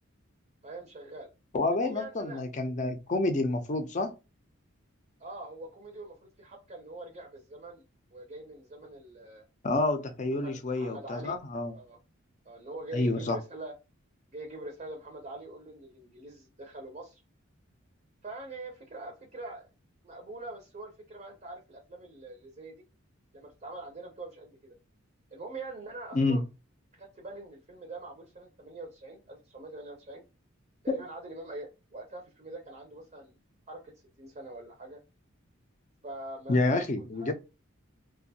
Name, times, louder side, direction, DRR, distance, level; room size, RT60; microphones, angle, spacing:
voice 1, 0.6-1.3 1.8-2.4 5.2-7.8 8.1-9.5 10.4-11.4 11.7-12.0 12.4-13.7 14.3-17.2 18.2-19.7 20.0-22.8 23.3-24.8 25.3-26.4 26.9-30.2 30.8-33.4 33.7-35.0 36.0-36.9 37.2-37.3, right 2 dB, 35° right, 0.5 m, -44 dB
voice 2, 1.5-4.1 9.6-11.7 12.9-13.4 26.1-26.4 30.9-31.0 36.5-37.3, left 2 dB, 35° left, 0.5 m, -28 dB
2.5 x 2.2 x 2.7 m
head